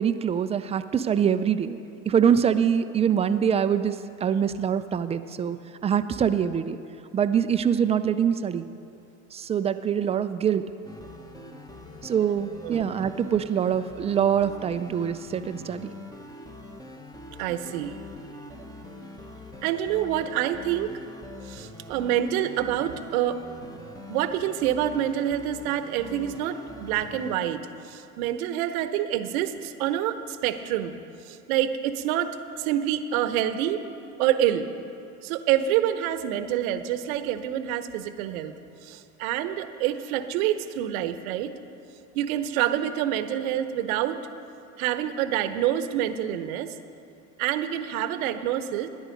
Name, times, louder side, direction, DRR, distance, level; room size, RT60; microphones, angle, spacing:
voice 1, 0.0-1.8 2.1-3.9 4.2-5.6 5.8-6.8 7.1-8.7 9.3-10.6 12.0-15.9, right 8 dB, 15° right, 11 dB, 0.3 m, -24 dB
sound 1, 10.8-27.4, left 1 dB, 10° left, 1.0 m, -43 dB
voice 2, 12.6-12.9 17.4-18.0 19.6-20.9 21.4-23.4 24.1-30.9 31.2-33.8 34.2-34.7 35.2-38.5 38.8-41.5 42.1-44.2 44.8-46.7 47.4-48.9, right 11 dB, 75° right, 11 dB, 0.9 m, -27 dB
13.0 x 10.5 x 5.2 m, 2.6 s
hypercardioid pair, 95°, 43 cm